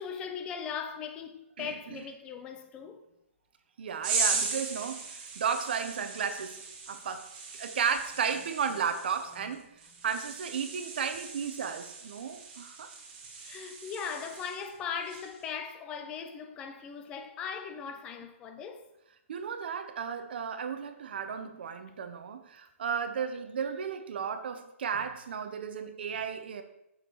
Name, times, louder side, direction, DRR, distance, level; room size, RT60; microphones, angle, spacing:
voice 1, 0.0-3.0 13.4-18.9, left 6 dB, 10° left, 0.5 m, -39 dB
voice 2, 1.6-2.0 3.8-9.7 10.0-12.9 19.3-26.6, right 7 dB, 50° right, 0.9 m, -34 dB
sound 1, 4.0-14.7 15.1-15.4, right 4 dB, 30° right, 1.8 m, -37 dB
7.6 x 6.6 x 4.6 m
hypercardioid pair, 165°, 7 cm